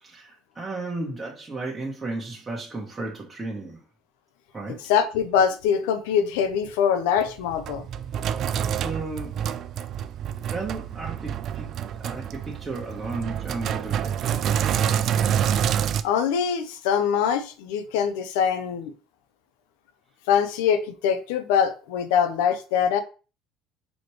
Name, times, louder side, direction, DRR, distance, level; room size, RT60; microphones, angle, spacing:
voice 1, 0.0-3.8 4.5-4.8 8.7-9.4 10.5-11.7 12.0-14.4, right 2 dB, 20° right, -3 dB, 1.1 m, -34 dB
voice 2, 4.9-7.9 16.0-18.9 20.3-23.0, left 8 dB, 90° left, 10 dB, 0.5 m, -23 dB
Sink (filling or washing), 7.2-16.0, right 9 dB, 55° right, 0.3 m, -27 dB
4.2 x 3.0 x 3.1 m, 0.35 s
supercardioid pair, 90°, 0 cm